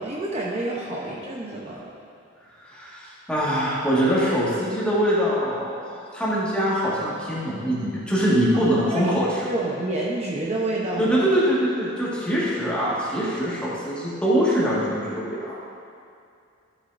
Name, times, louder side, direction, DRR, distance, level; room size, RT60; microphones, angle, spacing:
voice 1, 0.0-1.8 8.9-9.2 9.5-11.2, right 2 dB, 35° right, -5 dB, 0.8 m, -28 dB
voice 2, 2.6-9.5 11.0-15.6, equal, 5° left, -8 dB, 1.8 m, -23 dB
12.5 x 7.3 x 2.6 m, 2.4 s
head